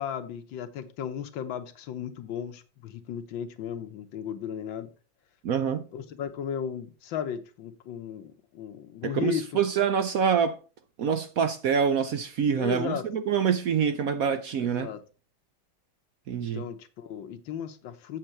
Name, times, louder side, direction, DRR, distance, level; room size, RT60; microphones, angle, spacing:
voice 1, 0.0-4.9 5.9-9.6 12.6-13.1 14.6-15.0 16.4-18.2, left 8 dB, 90° left, 1.7 m, -35 dB
voice 2, 5.4-5.8 9.0-10.6 11.0-14.9 16.3-16.6, right 7 dB, 65° right, 0.9 m, -26 dB
7.8 x 7.8 x 4.3 m
omnidirectional pair, 2.1 m